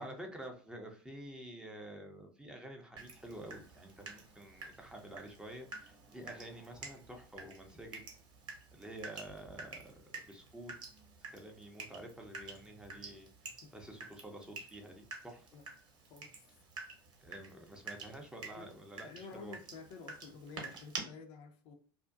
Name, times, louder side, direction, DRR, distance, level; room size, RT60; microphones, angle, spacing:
voice 1, 0.0-8.0 8.7-10.7 11.3-15.5 17.2-19.5, right 1 dB, 5° right, 2 dB, 0.5 m, -49 dB
Water tap faucet / Drip, 3.0-21.0, right 4 dB, 35° right, 0.9 m, -50 dB
voice 2, 19.0-21.7, left 4 dB, 50° left, 5 dB, 0.5 m, -50 dB
2.5 x 2.1 x 2.4 m, 0.41 s
hypercardioid pair, 85°, 12 cm